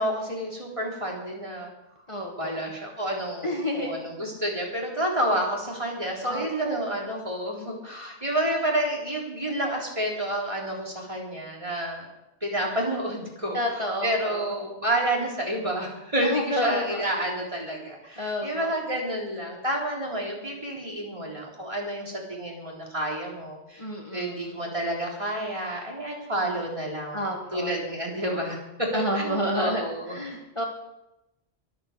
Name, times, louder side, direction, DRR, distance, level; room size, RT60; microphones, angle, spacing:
voice 1, 0.0-1.7 2.4-12.1 12.4-23.9 24.1-30.2, right 1 dB, 30° right, -2 dB, 3.8 m, -29 dB
voice 2, 2.1-2.6 3.4-3.9 6.2-6.7 13.5-14.4 16.2-17.0 18.2-18.7 23.8-24.5 27.1-27.7 28.9-29.8 30.1-30.6, equal, 30° left, 0 dB, 1.6 m, -30 dB
22.5 x 8.0 x 6.7 m, 0.93 s
omnidirectional pair, 1.1 m